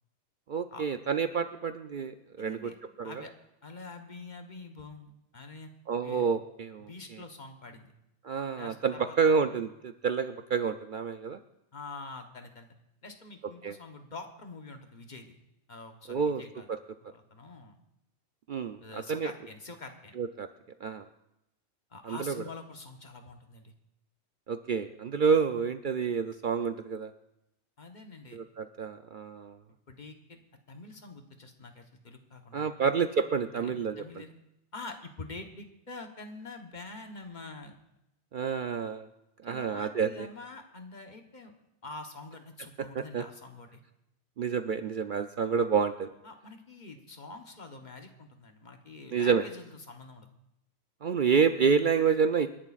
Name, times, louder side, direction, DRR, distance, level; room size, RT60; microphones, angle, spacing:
voice 1, 0.5-2.7 3.0-3.2 5.9-7.2 8.2-11.4 13.6-13.8 16.1-16.4 16.7-16.8 18.5-19.3 20.2-20.5 20.8-21.1 22.0-22.4 24.5-27.1 28.3-29.6 32.5-34.2 38.3-39.1 39.4-40.3 42.9-43.2 44.4-46.1 49.1-49.4 51.0-52.5, right 6 dB, 55° right, 8 dB, 0.6 m, -29 dB
voice 2, 2.4-2.8 3.0-3.3 3.6-5.7 6.0-6.2 6.9-7.9 8.5-9.2 11.7-12.7 13.0-15.4 15.7-16.7 17.1-17.8 18.8-20.1 21.9-23.7 27.8-28.4 29.9-30.4 30.7-33.0 33.5-34.3 34.7-37.7 39.5-41.5 41.8-43.8 46.2-50.3, left 3 dB, 40° left, 4 dB, 1.2 m, -46 dB
28.5 x 11.0 x 2.4 m, 0.86 s
omnidirectional pair, 1.2 m